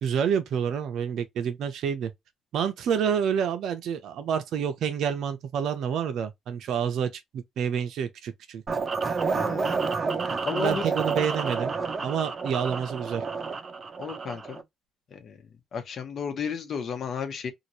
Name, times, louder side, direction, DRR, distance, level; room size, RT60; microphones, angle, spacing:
voice 1, 0.0-2.1 2.5-8.6 10.5-11.7 12.0-13.2, right 7 dB, 75° right, 0.7 m, -28 dB
sound 1, 8.7-14.6, right 4 dB, 40° right, 0.6 m, -29 dB
voice 2, 9.3-9.8 10.4-10.8 14.0-14.6 15.1-17.5, left 6 dB, 60° left, 1.0 m, -33 dB
2.9 x 2.5 x 2.8 m
cardioid pair, 90°, 0 cm